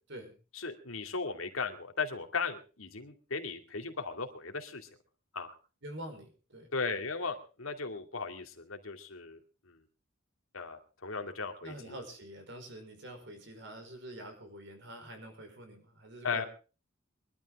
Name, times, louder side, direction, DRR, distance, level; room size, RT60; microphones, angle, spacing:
voice 1, 0.5-4.9 5.3-5.5 6.7-9.4 9.7-9.8 10.5-12.0 16.2-16.4, left 4 dB, 85° left, 5 dB, 2.3 m, -37 dB
voice 2, 5.8-6.7 11.6-16.5, right 1 dB, 60° right, 6 dB, 5.0 m, -46 dB
22.5 x 12.5 x 3.7 m, 0.34 s
head